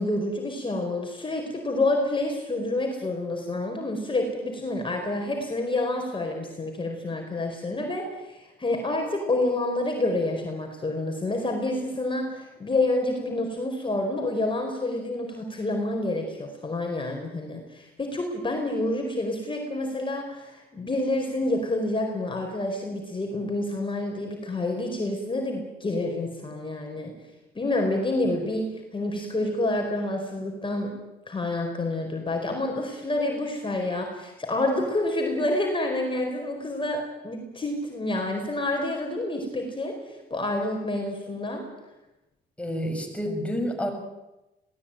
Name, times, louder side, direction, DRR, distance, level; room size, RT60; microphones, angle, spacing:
voice 1, 0.0-27.2 27.5-31.0 31.3-40.0 40.3-41.7, left 2 dB, 25° left, 2 dB, 4.7 m, -28 dB
voice 2, 42.6-43.9, equal, 5° left, 3 dB, 6.9 m, -29 dB
21.5 x 18.5 x 9.1 m, 1.0 s
cardioid pair, 90°, 20 cm